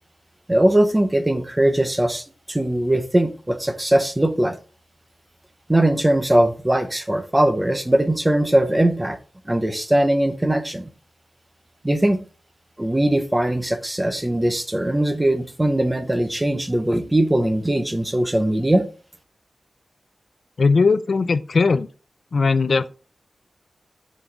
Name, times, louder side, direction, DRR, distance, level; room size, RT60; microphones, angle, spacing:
voice 1, 0.5-4.6 5.7-9.2 9.5-10.9 11.8-12.2 12.8-18.9, right 1 dB, 15° right, 0.7 m, -20 dB
voice 2, 20.6-21.9 22.3-22.9, left 4 dB, 55° left, 0.4 m, -18 dB
6.1 x 5.3 x 3.3 m
wide cardioid pair, 130°, 0 cm